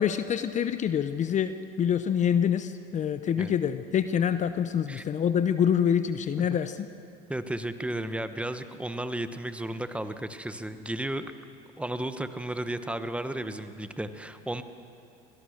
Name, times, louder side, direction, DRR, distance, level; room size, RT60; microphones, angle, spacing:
voice 1, 0.0-6.9, left 8 dB, 40° left, 11 dB, 0.7 m, -26 dB
voice 2, 7.3-11.3 11.8-14.6, right 1 dB, 5° right, 10 dB, 1.1 m, -33 dB
23.5 x 17.0 x 6.6 m, 2.4 s
supercardioid pair, 95°, 19 cm